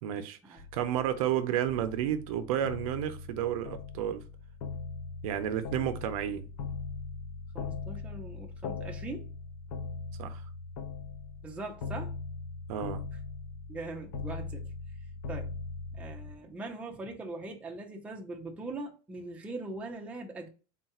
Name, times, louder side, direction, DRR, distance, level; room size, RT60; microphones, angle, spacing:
voice 1, 0.0-4.2 5.2-6.5 10.2-10.4 12.7-13.0, right 10 dB, 80° right, 0.6 m, -31 dB
sound 1, 0.6-16.3, left 4 dB, 55° left, 0.6 m, -40 dB
voice 2, 7.5-9.3 11.4-12.2 13.7-14.7 15.3-15.5 15.9-20.5, right 2 dB, 5° right, 0.5 m, -41 dB
3.7 x 2.3 x 4.2 m
supercardioid pair, 165°, 18 cm